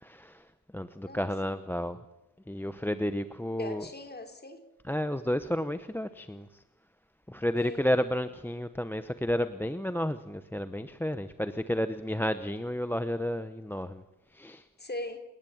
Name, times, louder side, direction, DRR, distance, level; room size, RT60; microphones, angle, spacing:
voice 1, 0.0-2.0 2.5-3.9 4.8-6.6 7.3-14.0 14.3-14.7, equal, 5° left, 11 dB, 0.9 m, -31 dB
voice 2, 3.6-4.6 7.6-7.8 14.8-15.2, left 2 dB, 30° left, 6 dB, 3.7 m, -39 dB
29.5 x 19.0 x 8.8 m, 0.93 s
wide cardioid pair, 140°, 34 cm